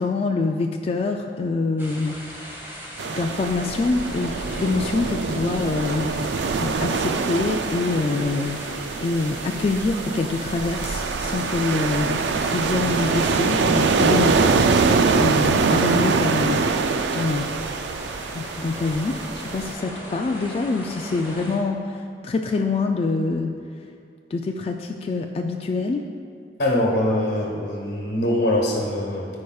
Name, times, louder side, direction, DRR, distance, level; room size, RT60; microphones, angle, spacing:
voice 1, 0.0-2.2 3.1-6.2 6.6-16.7 17.1-17.5 18.3-23.5 24.3-26.0, left 3 dB, 35° left, 3 dB, 0.3 m, -25 dB
sound 1, 1.8-21.6, equal, 15° right, 1.2 m, -38 dB
sound 2, 3.0-19.7, right 4 dB, 75° right, 0.4 m, -24 dB
voice 2, 26.6-29.3, left 1 dB, 75° left, -3 dB, 1.1 m, -23 dB
13.5 x 4.8 x 2.3 m, 2.4 s
head